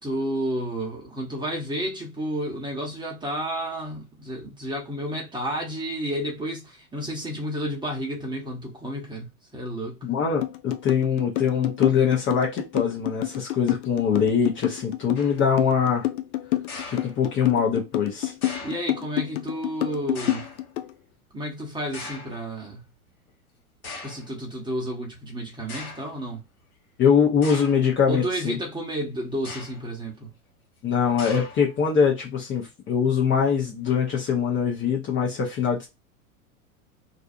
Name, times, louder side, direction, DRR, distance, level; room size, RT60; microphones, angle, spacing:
voice 1, 0.0-10.0 18.6-20.4 21.3-22.8 24.0-26.4 28.1-30.3, right 1 dB, 10° right, 1.0 m, -31 dB
voice 2, 10.0-16.1 16.9-18.3 27.0-28.6 30.8-35.9, left 7 dB, 25° left, 0.9 m, -23 dB
sound 1, 10.4-20.9, left 15 dB, 55° left, 0.5 m, -28 dB
sound 2, 15.1-15.5 16.7-17.6 18.4-18.9 20.1-20.7 21.9-22.5 23.3-23.4 23.8-24.3 25.1-25.2 25.7-26.2 27.4-27.9 29.3-29.9 31.2-31.8, left 3 dB, 75° left, 1.1 m, -39 dB
2.6 x 2.3 x 2.6 m
figure-of-eight pair, 85°, 44 cm